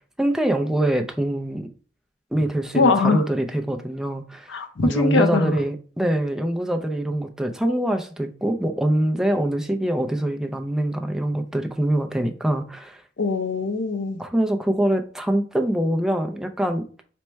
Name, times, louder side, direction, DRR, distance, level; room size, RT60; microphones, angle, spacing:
voice 1, 0.2-1.7 2.3-13.0 14.2-17.0, right 1 dB, 5° right, 4 dB, 0.4 m, -24 dB
voice 2, 2.7-3.2 4.5-5.6 13.2-14.2, left 3 dB, 70° left, 8 dB, 0.6 m, -21 dB
4.4 x 2.1 x 4.4 m, 0.41 s
head